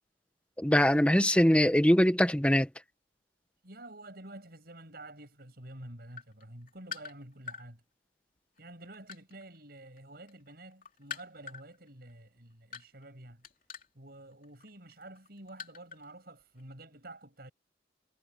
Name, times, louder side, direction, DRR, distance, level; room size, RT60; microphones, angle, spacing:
voice 1, 0.6-2.7, equal, 5° left, 1.4 m, -22 dB
voice 2, 3.6-7.8 8.6-13.4 14.0-17.5, right 1 dB, 60° right, 7.5 m, -49 dB
sound 1, 6.0-7.6 8.4-10.0 10.3-16.1 16.4-16.6, left 7 dB, 50° left, 3.2 m, -45 dB
head